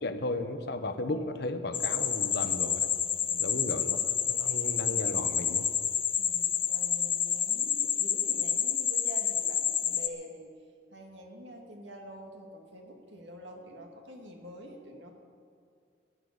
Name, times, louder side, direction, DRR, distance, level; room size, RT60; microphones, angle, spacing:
voice 1, 0.0-2.9 3.4-5.7, left 2 dB, 60° left, 8 dB, 1.0 m, -35 dB
sound 1, 1.7-10.1, left 8 dB, 30° left, 0.6 m, -29 dB
voice 2, 3.2-3.8 6.2-10.5 10.9-15.2, right 1 dB, 85° right, 2 dB, 2.1 m, -47 dB
15.0 x 7.3 x 9.6 m, 2.3 s
head